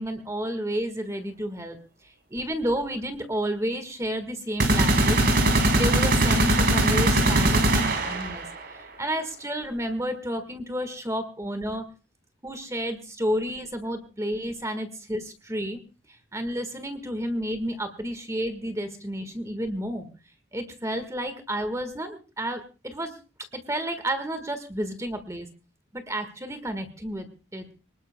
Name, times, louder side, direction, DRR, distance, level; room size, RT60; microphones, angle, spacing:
voice 1, 0.0-1.8 2.0-5.2 5.7-11.9 12.4-15.8 16.1-20.1 20.5-23.2 23.5-25.5 25.9-27.3 27.5-27.7, equal, 15° right, 8 dB, 1.6 m, -31 dB
sound 1, 4.6-8.5, right 1 dB, 50° right, 3.4 m, -21 dB
25.5 x 19.5 x 2.2 m, 0.33 s
head